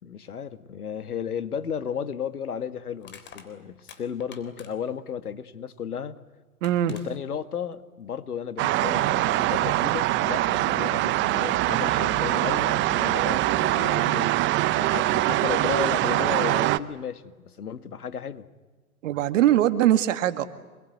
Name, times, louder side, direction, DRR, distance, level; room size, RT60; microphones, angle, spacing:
voice 1, 0.0-6.2 6.9-14.3 14.7-18.5, left 7 dB, 85° left, 12 dB, 1.9 m, -34 dB
Crushing, 3.0-5.0 6.2-6.3 6.6-7.1, left 7 dB, 25° left, 3.7 m, -47 dB
voice 2, 6.6-6.9 19.0-20.4, right 12 dB, 60° right, 10 dB, 2.2 m, -21 dB
sound 1, 8.6-16.8, right 16 dB, 25° right, 0.8 m, -23 dB
27.5 x 21.5 x 9.6 m, 1.3 s
hypercardioid pair, 115°, 44 cm